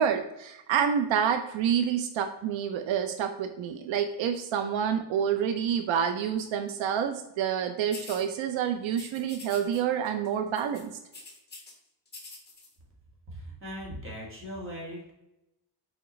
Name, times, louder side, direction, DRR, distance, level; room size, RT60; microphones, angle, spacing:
voice 1, 0.0-10.9, right 8 dB, 85° right, 7 dB, 0.7 m, -28 dB
sound 1, 7.9-8.3 8.9-9.8 10.1-10.3 10.6-11.7 12.1-12.7, left 3 dB, 20° left, 1.5 m, -45 dB
voice 2, 13.3-15.1, equal, 25° right, -2 dB, 2.1 m, -39 dB
7.1 x 4.4 x 3.1 m, 0.89 s
cardioid pair, 140°, 46 cm